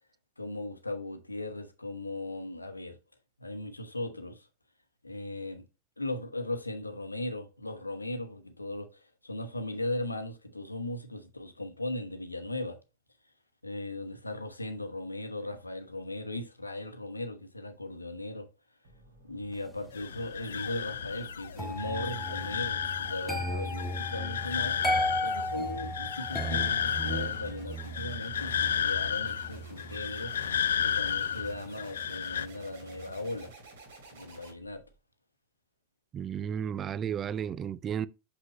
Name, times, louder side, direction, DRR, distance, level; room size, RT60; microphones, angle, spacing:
voice 1, 0.4-3.0 3.4-4.5 5.0-5.6 6.0-12.8 13.6-18.5 19.2-24.8 25.2-30.3 30.8-33.5 34.1-34.8, left 1 dB, 85° left, 0.9 m, -38 dB
sound 1, 18.8-35.0, right 1 dB, 60° right, 2.4 m, -53 dB
sound 2, 19.9-32.5, left 9 dB, 65° left, 0.3 m, -33 dB
sound 3, 21.6-32.5 32.8-33.2, equal, 5° left, 0.8 m, -36 dB
voice 2, 36.1-38.1, right 8 dB, 25° right, 0.3 m, -33 dB
6.0 x 5.7 x 3.1 m
figure-of-eight pair, 90°, 0 cm